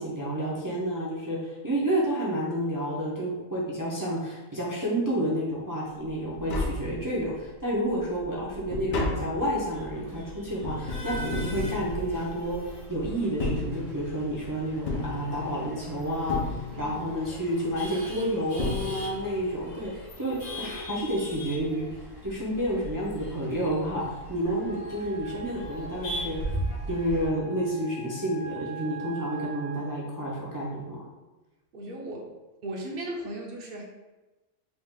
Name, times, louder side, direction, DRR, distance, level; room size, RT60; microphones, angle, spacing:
voice 1, 0.0-21.9 22.2-26.6 26.9-31.0, equal, 25° right, -6 dB, 0.5 m, -30 dB
Tap, 6.1-6.2 6.3-7.4 7.9-12.6 13.2-14.3 14.9-15.8 16.3-17.1 18.1-18.2 18.6-19.4 19.7-19.8, left 2 dB, 60° left, 0.8 m, -33 dB
Male speech man speaking / Laughter / Chatter, 9.7-27.3, right 1 dB, 75° left, 1.4 m, -40 dB
Wind instrument woodwind instrument, 24.5-29.9, right 4 dB, 85° right, 1.4 m, -43 dB
voice 2, 31.7-32.3 32.6-33.8, right 1 dB, 50° right, 0 dB, 0.8 m, -36 dB
4.1 x 2.4 x 3.6 m, 1.1 s
omnidirectional pair, 1.3 m